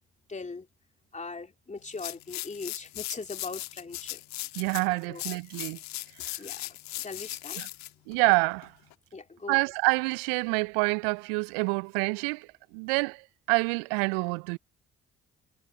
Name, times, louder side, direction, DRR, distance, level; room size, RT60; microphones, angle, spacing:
voice 1, 0.3-0.7 1.1-4.2 5.1-5.2 6.4-7.6 9.1-9.6, left 4 dB, 25° left, 2.7 m, -40 dB
sound 1, 1.9-8.9, left 17 dB, 65° left, 1.5 m, -38 dB
voice 2, 4.6-5.8 7.6-7.7 8.1-8.7 9.5-12.5 12.7-13.2 13.5-14.6, right 34 dB, 75° right, 0.5 m, -27 dB
hypercardioid pair, 45°, 30 cm